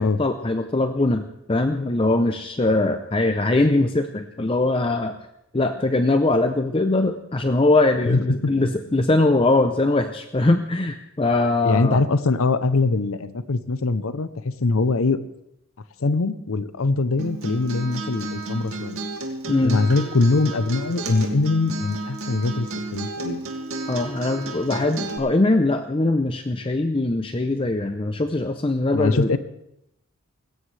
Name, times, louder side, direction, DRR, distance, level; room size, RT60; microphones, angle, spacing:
voice 1, 0.0-5.2 5.5-12.0 19.5-19.8 23.9-29.3, left 2 dB, 25° left, 7 dB, 0.6 m, -21 dB
voice 2, 8.0-8.5 11.6-15.2 16.0-19.0 19.6-23.4 28.9-29.4, left 3 dB, 75° left, 13 dB, 0.7 m, -22 dB
Acoustic guitar, 17.2-25.2, right 2 dB, 85° right, 2.3 m, -32 dB
19.5 x 17.0 x 3.3 m, 0.80 s
head